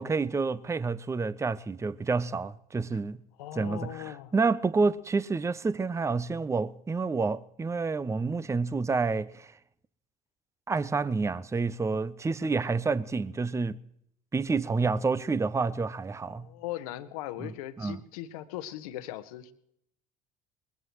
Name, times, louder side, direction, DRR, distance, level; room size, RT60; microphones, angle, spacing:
voice 1, 0.0-3.2 3.6-9.5 10.7-13.8 14.3-16.5 17.4-17.5 17.8-18.0, right 4 dB, 15° right, 0.7 m, -29 dB
voice 2, 3.4-4.3 12.4-12.5 16.3-19.5, left 13 dB, 75° left, 1.2 m, -39 dB
21.5 x 21.0 x 3.1 m
hypercardioid pair, 65°, 19 cm